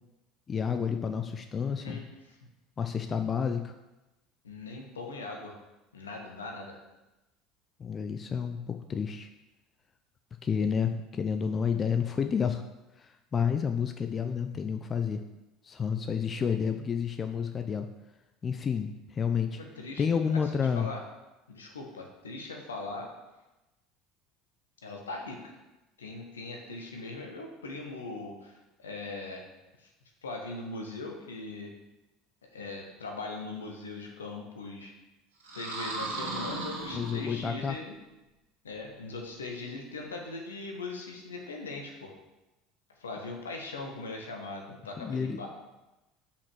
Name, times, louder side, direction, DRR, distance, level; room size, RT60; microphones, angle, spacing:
voice 1, 0.5-2.0 2.8-3.7 7.8-9.3 10.4-12.6 13.0-15.2 15.6-17.9 18.4-19.6 20.0-20.9 36.9-37.8 45.0-45.4, left 6 dB, 35° left, 7 dB, 0.5 m, -30 dB
voice 2, 4.4-5.5 5.9-6.7 19.6-20.0 20.3-21.0 21.5-23.1 24.8-25.5 26.0-29.4 29.8-29.9 30.2-31.7 32.5-34.9 35.5-37.9 38.6-42.1 43.0-45.5, left 3 dB, 85° left, 2 dB, 1.3 m, -40 dB
sound 1, 35.4-37.7, right 2 dB, 80° right, 2.0 m, -36 dB
5.8 x 5.2 x 6.2 m, 1.0 s
figure-of-eight pair, 70°, 0 cm